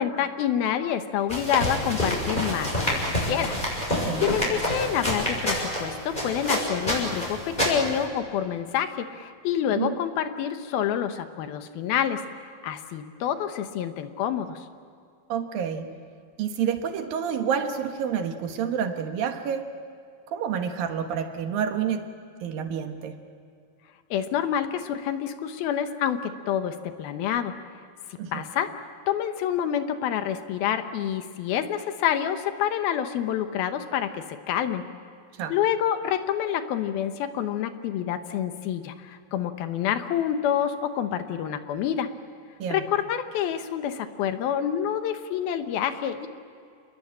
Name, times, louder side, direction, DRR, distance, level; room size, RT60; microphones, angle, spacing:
voice 1, 0.0-3.5 4.2-14.6 24.1-27.5 28.3-28.7 29.1-34.8 35.5-42.1 42.7-46.3, left 9 dB, 75° left, 8 dB, 2.9 m, -27 dB
sound 1, 1.3-8.0, equal, 10° left, 6.8 m, -27 dB
voice 2, 4.1-4.4 9.7-10.0 15.3-15.9 16.4-19.7 20.3-22.1 22.4-23.2 28.2-28.4 35.4-35.6 42.6-42.9, right 7 dB, 70° right, 6 dB, 3.0 m, -29 dB
28.5 x 21.0 x 8.7 m, 2.3 s
omnidirectional pair, 4.5 m